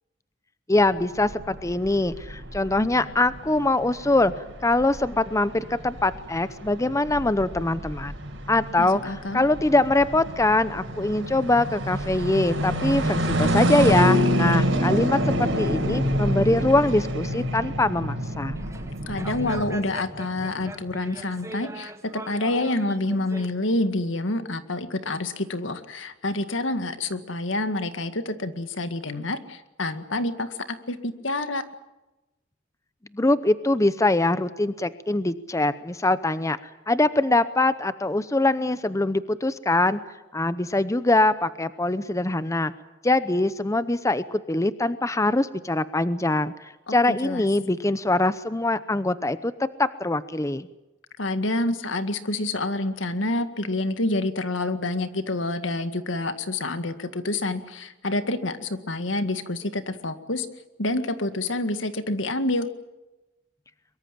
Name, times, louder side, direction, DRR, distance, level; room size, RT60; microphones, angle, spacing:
voice 1, 0.7-8.1 8.5-18.6 33.1-36.6 36.9-40.0 40.3-42.7 43.0-46.5 46.9-50.7, left 2 dB, 15° left, 14 dB, 0.8 m, -23 dB
sound 1, 0.8-19.7, equal, 75° right, 4.8 m, -27 dB
voice 2, 8.8-9.4 19.1-31.6 46.9-47.5 51.2-60.5 60.8-62.7, left 2 dB, 80° left, 9 dB, 1.9 m, -28 dB
sound 2, 18.6-23.5, right 1 dB, 15° right, 1.5 m, -40 dB
23.5 x 23.0 x 7.5 m, 1.0 s
head